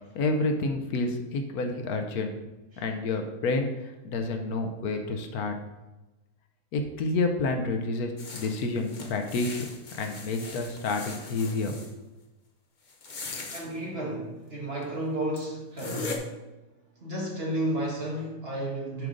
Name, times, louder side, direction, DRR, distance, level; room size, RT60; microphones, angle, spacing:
voice 1, 0.1-2.3 2.8-3.7 4.0-5.5 6.7-9.7 9.9-11.9, left 3 dB, 75° left, 5 dB, 1.2 m, -29 dB
sound 1, 8.2-11.9 12.9-13.6 14.8-14.9 15.4-15.5 15.8-16.2, left 4 dB, 40° left, 0.7 m, -39 dB
voice 2, 13.5-16.3 17.0-19.1, right 1 dB, 40° right, -3 dB, 1.7 m, -32 dB
7.7 x 3.8 x 5.0 m, 1.1 s
omnidirectional pair, 1.6 m